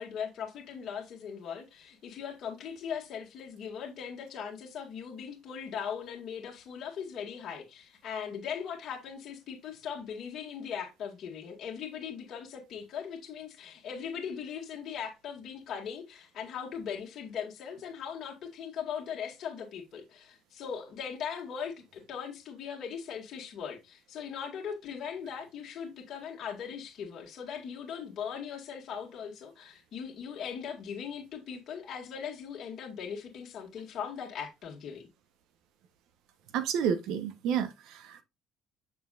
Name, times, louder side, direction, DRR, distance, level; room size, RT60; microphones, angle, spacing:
voice 1, 0.0-35.1, left 7 dB, 55° left, 1.8 m, -39 dB
voice 2, 36.5-38.2, right 8 dB, 75° right, 1.0 m, -30 dB
6.9 x 6.1 x 2.5 m
cardioid pair, 100°, 0 cm